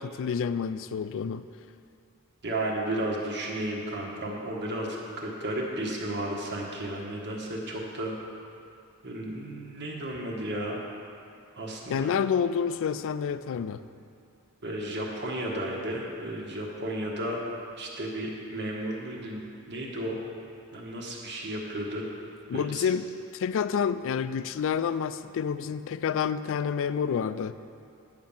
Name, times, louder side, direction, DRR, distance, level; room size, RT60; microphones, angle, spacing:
voice 1, 0.0-1.4 11.9-13.8 22.5-23.1 23.3-27.5, left 7 dB, 65° left, 13 dB, 0.3 m, -28 dB
voice 2, 2.4-8.1 9.0-10.8 11.6-12.1 14.6-17.4 17.8-19.4 19.7-20.2 20.7-22.0 22.5-22.8, right 1 dB, 55° right, -2 dB, 1.4 m, -33 dB
9.3 x 5.3 x 7.2 m, 2.5 s
head